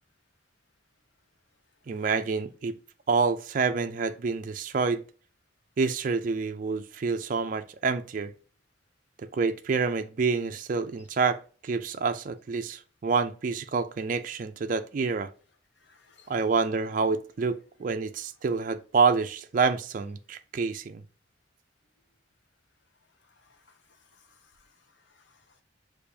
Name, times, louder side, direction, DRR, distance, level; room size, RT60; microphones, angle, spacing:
voice 1, 1.9-2.7 3.1-5.0 5.8-8.3 9.2-15.3 16.3-21.0, right 4 dB, 40° right, 0.3 m, -27 dB
voice 2, 15.8-16.4 17.8-17.9 23.2-25.6, left 5 dB, 65° left, 0.7 m, -63 dB
6.6 x 2.5 x 2.7 m
head